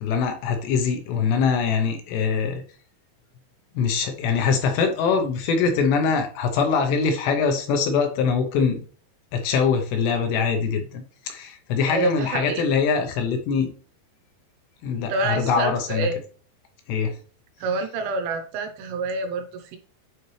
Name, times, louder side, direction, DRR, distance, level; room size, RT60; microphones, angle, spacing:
voice 1, 0.0-2.6 3.8-8.8 9.3-13.7 14.8-16.1 16.9-17.2, left 5 dB, 75° left, 5 dB, 2.7 m, -23 dB
voice 2, 11.9-12.6 15.1-16.1 17.6-19.8, right 3 dB, 85° right, 5 dB, 3.6 m, -27 dB
9.4 x 4.4 x 3.2 m, 0.41 s
omnidirectional pair, 5.5 m